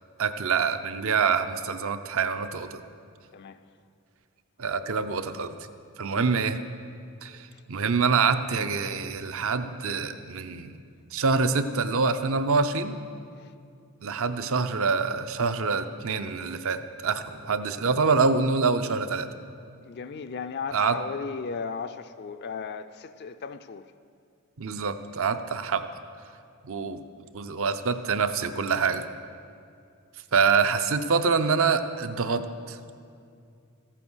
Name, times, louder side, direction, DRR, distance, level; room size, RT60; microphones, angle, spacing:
voice 1, 0.2-2.8 4.6-5.5 6.0-6.6 7.2-10.7 11.1-13.0 14.0-19.3 20.7-21.0 24.6-25.9 26.6-27.0 27.3-29.1 30.3-32.8, right 5 dB, 65° right, 10 dB, 0.6 m, -26 dB
voice 2, 19.8-23.9, left 5 dB, 50° left, 9 dB, 0.4 m, -36 dB
14.5 x 9.0 x 6.2 m, 2.4 s
head